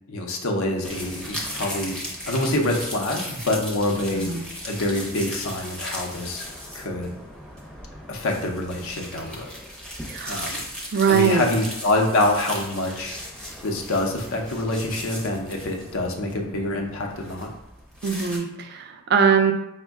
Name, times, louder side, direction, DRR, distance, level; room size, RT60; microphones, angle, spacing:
voice 1, 0.1-2.0 2.3-4.3 4.6-6.5 6.7-7.1 8.1-9.5 10.3-10.6 11.1-13.2 13.6-17.5, left 1 dB, 65° left, 2 dB, 0.6 m, -26 dB
sound 1, 0.8-18.4, equal, 5° left, 0.6 m, -37 dB
voice 2, 10.1-10.5 10.9-11.5 18.0-19.5, right 6 dB, 45° right, 6 dB, 0.3 m, -21 dB
5.1 x 2.1 x 3.5 m, 0.87 s
head